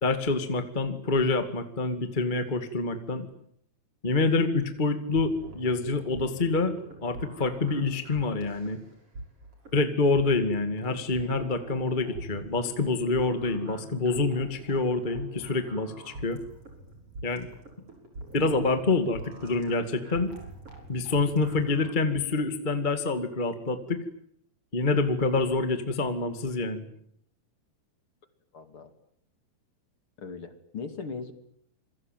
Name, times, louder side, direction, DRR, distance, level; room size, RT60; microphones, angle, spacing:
voice 1, 0.0-3.3 4.0-8.8 9.7-16.4 17.2-17.5 18.3-20.3 20.9-24.0 24.7-26.9, left 3 dB, 20° left, 9 dB, 1.3 m, -27 dB
sound 1, 5.1-21.9, right 2 dB, 35° right, 7.1 m, -44 dB
voice 2, 28.5-28.9 30.2-31.3, left 4 dB, 40° left, 9 dB, 2.8 m, -38 dB
27.5 x 23.0 x 9.2 m, 0.68 s
omnidirectional pair, 4.4 m